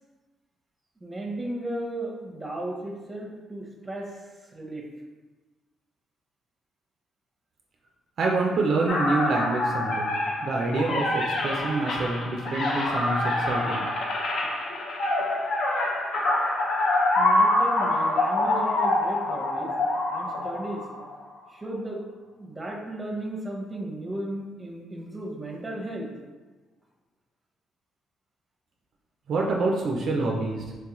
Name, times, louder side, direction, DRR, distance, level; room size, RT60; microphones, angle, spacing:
voice 1, 1.0-4.9 17.2-19.7 20.1-20.8 21.5-22.1 22.3-26.1, right 1 dB, 20° right, -1 dB, 0.6 m, -35 dB
voice 2, 8.2-10.2 10.4-13.9 29.3-30.7, right 3 dB, 65° right, 0 dB, 0.3 m, -26 dB
sound 1, 8.9-21.2, left 2 dB, 65° left, 0.6 m, -26 dB
3.3 x 2.3 x 2.9 m, 1.2 s
cardioid pair, 90°, 0 cm